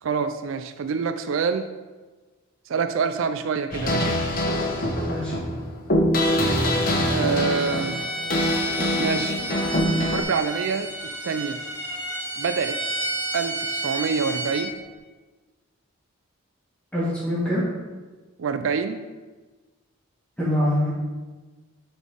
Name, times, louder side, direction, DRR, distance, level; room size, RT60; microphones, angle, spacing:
voice 1, 0.0-1.7 2.7-4.2 7.1-8.0 9.0-9.4 9.9-11.6 12.4-12.8 13.3-14.8 18.4-19.1, right 5 dB, 65° right, 9 dB, 0.4 m, -26 dB
sound 1, 3.7-10.2, equal, 40° left, 1.0 m, -24 dB
voice 2, 5.0-5.3 16.9-17.6 20.4-20.9, left 1 dB, 5° left, -8 dB, 1.8 m, -24 dB
Bowed string instrument, 7.3-14.7, right 1 dB, 10° right, 0.9 m, -31 dB
10.5 x 4.0 x 3.6 m, 1.3 s
head